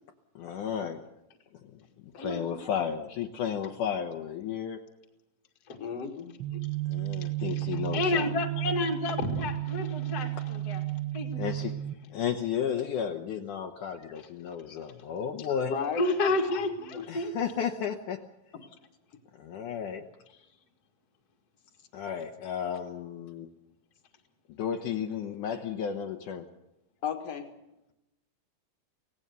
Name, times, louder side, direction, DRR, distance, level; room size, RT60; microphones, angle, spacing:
voice 1, 0.4-1.0 1.7-1.8 2.1-4.8 6.9-8.3 11.4-11.8 12.1-15.7 17.1-18.2 19.4-20.1 21.9-23.5 24.6-26.5, left 8 dB, 70° left, 3 dB, 2.3 m, -33 dB
voice 2, 2.2-2.8 5.7-5.8 7.2-10.8 11.1-11.5 14.2-14.3 15.5-17.3, left 2 dB, 30° left, 2 dB, 2.1 m, -31 dB
voice 3, 5.8-6.3 15.6-16.1 16.5-16.6 16.9-17.1 18.5-18.7 27.0-27.5, left 6 dB, 50° left, 6 dB, 2.4 m, -34 dB
sound 1, 6.4-11.9, right 16 dB, 90° right, 1.1 m, -33 dB
25.5 x 18.0 x 6.9 m, 0.91 s
omnidirectional pair, 4.2 m